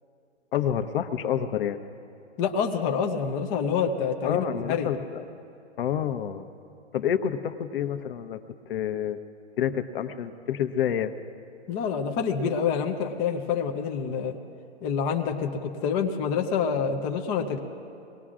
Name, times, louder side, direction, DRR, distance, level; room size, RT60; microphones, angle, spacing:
voice 1, 0.5-1.8 4.2-5.2 5.8-6.5 6.9-8.4 8.7-9.2 9.6-11.1, left 9 dB, 50° left, 9 dB, 0.9 m, -28 dB
voice 2, 2.4-4.9 11.7-14.3 14.8-17.6, left 6 dB, 10° left, 3 dB, 0.4 m, -27 dB
24.0 x 19.0 x 2.5 m, 2.7 s
hypercardioid pair, 140°, 36 cm